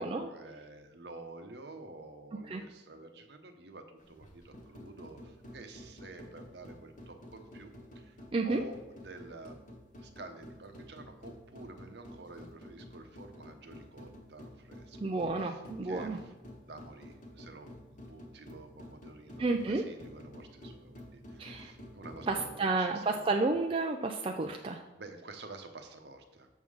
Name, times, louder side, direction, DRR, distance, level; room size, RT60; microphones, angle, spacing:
voice 1, 0.0-9.6 10.0-23.0 24.9-26.5, right 2 dB, 60° right, 6 dB, 0.9 m, -50 dB
sound 1, 4.0-22.6, left 1 dB, 45° left, 1.2 m, -51 dB
voice 2, 15.0-16.2 19.4-19.8 21.4-21.7 22.3-24.8, right 3 dB, 30° right, 2 dB, 0.4 m, -31 dB
7.2 x 3.7 x 6.4 m, 1.2 s
head